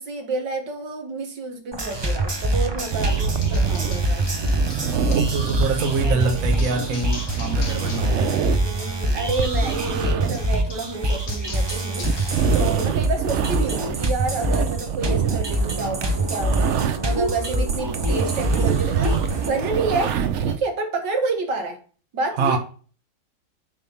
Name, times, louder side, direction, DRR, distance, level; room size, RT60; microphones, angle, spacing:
voice 1, 0.0-4.6 6.0-6.4 8.6-12.1 12.5-21.8 22.1-22.6, right 3 dB, 70° right, 1.9 m, -29 dB
sound 1, 1.7-19.5, right 1 dB, 25° right, 0.5 m, -25 dB
sound 2, 2.9-17.2 17.5-20.6, right 8 dB, 85° right, 0.6 m, -26 dB
sound 3, 3.4-5.6 6.6-8.1 8.4-8.9 10.0-12.5, left 5 dB, 75° left, 2.0 m, -41 dB
voice 2, 5.0-8.4 22.4-22.6, right 4 dB, 50° right, 1.3 m, -25 dB
8.5 x 3.6 x 5.6 m
omnidirectional pair, 2.0 m